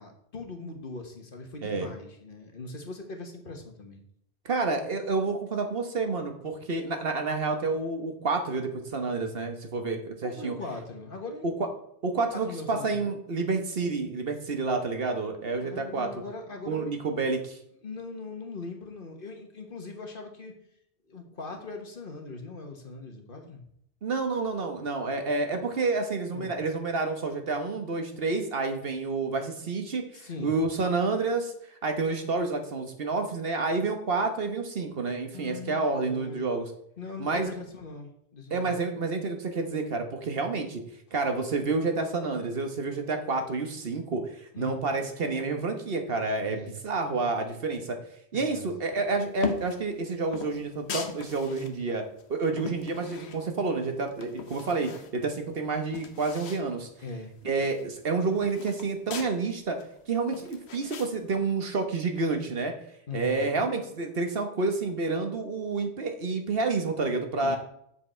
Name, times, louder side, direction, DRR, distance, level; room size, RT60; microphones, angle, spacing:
voice 1, 0.0-4.0 10.2-11.5 12.3-13.1 15.5-16.9 17.8-20.5 21.1-23.6 26.3-26.6 30.1-30.6 35.3-36.4 37.0-38.7 44.5-45.3 46.5-46.7 48.3-48.7 51.5-51.8 57.0-57.3 63.1-63.7 67.4-67.6, left 3 dB, 55° left, 3 dB, 1.5 m, -40 dB
voice 2, 4.4-10.5 11.4-11.5 12.0-16.1 16.7-17.6 24.0-31.5 31.8-36.7 37.2-37.5 38.5-40.8 41.1-48.0 48.3-52.0 52.3-56.9 57.4-59.8 60.1-62.7 63.1-67.6, right 3 dB, 60° right, 5 dB, 1.3 m, -29 dB
sound 1, 49.4-49.8 50.3-51.7 52.2-53.7 54.1-55.1 55.5-55.6 55.8-56.7 57.0-57.1 57.4-59.3 59.8-61.1, left 7 dB, 75° left, 1.2 m, -39 dB
7.7 x 7.1 x 4.3 m, 0.72 s
omnidirectional pair, 1.1 m